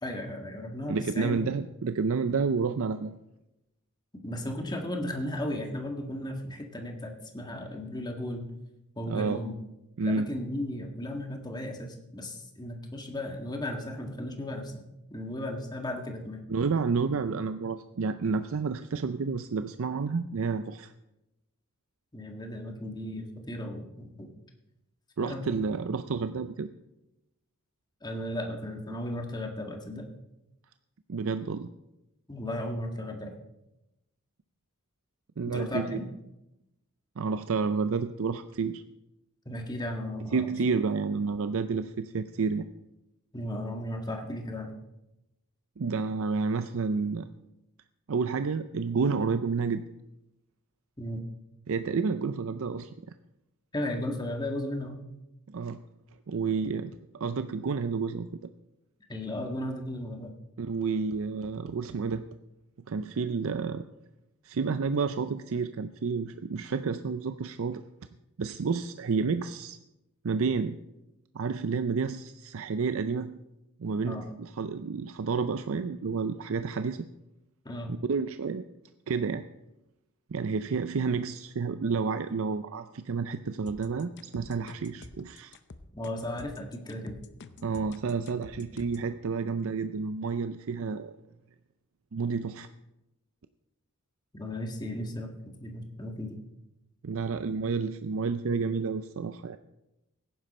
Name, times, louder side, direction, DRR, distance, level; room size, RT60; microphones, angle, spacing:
voice 1, 0.0-1.4 4.2-8.5 9.0-9.5 10.0-14.7 15.1-16.4 22.1-24.3 25.2-25.6 28.0-30.1 32.3-33.4 35.5-36.0 39.5-40.4 43.3-44.7 51.0-51.2 53.7-55.0 59.1-60.3 74.0-74.3 77.7-77.9 85.9-87.2 88.6-88.7 94.3-95.3 95.6-96.4, left 1 dB, 20° left, 3 dB, 1.8 m, -35 dB
voice 2, 0.9-3.1 9.1-9.4 10.0-10.3 16.5-20.9 25.2-26.7 31.1-31.7 35.4-36.0 37.2-38.8 40.3-42.7 45.8-47.3 48.1-49.8 51.7-52.9 55.5-55.8 56.3-58.3 60.6-62.2 62.9-63.9 64.4-67.8 68.4-69.8 70.2-70.8 71.3-73.4 73.8-77.1 78.1-78.6 79.1-79.4 80.3-85.6 87.6-91.1 92.1-92.7 97.0-99.6, right 5 dB, 65° right, 11 dB, 0.5 m, -30 dB
sound 1, 83.7-89.1, left 3 dB, 55° left, 0.7 m, -48 dB
17.0 x 10.0 x 4.3 m, 0.92 s
head